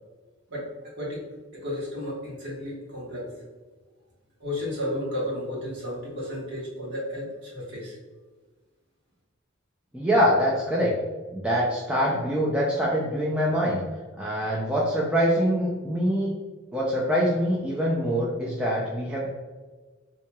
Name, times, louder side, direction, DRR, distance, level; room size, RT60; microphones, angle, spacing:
voice 1, 1.5-3.3 4.4-7.9, left 1 dB, 55° right, -6 dB, 1.4 m, -33 dB
voice 2, 9.9-10.9 11.3-13.8 14.2-16.3 16.7-19.3, equal, 5° right, -5 dB, 0.4 m, -24 dB
4.4 x 2.8 x 2.2 m, 1.4 s
head